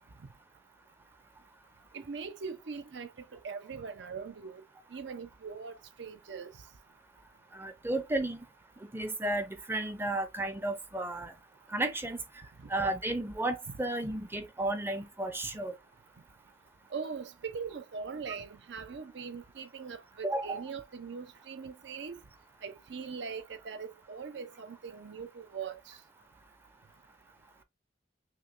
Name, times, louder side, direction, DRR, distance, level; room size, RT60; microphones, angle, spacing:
voice 1, 1.9-4.6 4.9-6.5 12.6-12.7 13.7-13.8 16.9-22.2 22.6-26.0, right 5 dB, 70° right, 0.5 m, -41 dB
voice 2, 7.5-8.4 8.8-11.3 11.7-12.2 12.7-15.7 20.2-20.6, right 1 dB, 15° right, 0.5 m, -33 dB
5.9 x 2.2 x 2.4 m
head